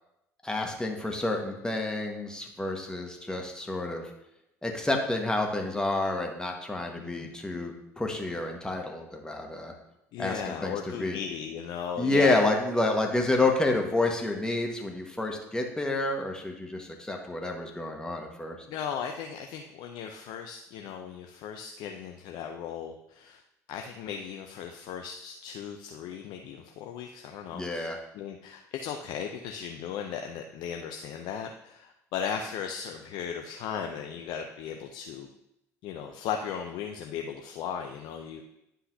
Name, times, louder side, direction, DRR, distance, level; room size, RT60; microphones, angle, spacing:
voice 1, 0.4-4.0 4.6-9.7 10.2-11.2 12.0-18.6 27.5-28.0, left 2 dB, 10° left, 2 dB, 1.4 m, -29 dB
voice 2, 7.0-7.3 10.1-12.5 18.7-23.4 23.7-35.3 35.8-38.4, left 7 dB, 60° left, 4 dB, 0.5 m, -36 dB
10.0 x 5.6 x 2.7 m, 0.84 s
hypercardioid pair, 60°, 8 cm